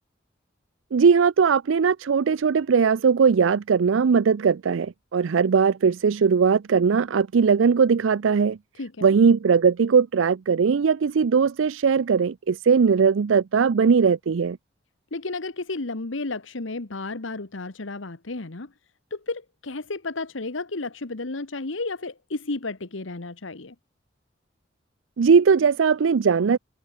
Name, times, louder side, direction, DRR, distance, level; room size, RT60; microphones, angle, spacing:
voice 1, 0.9-8.6 9.0-14.6 25.2-26.6, right 6 dB, 80° right, 0.4 m, -19 dB
voice 2, 8.8-9.1 15.1-18.7 19.1-23.7, left 3 dB, 85° left, 1.4 m, -32 dB
head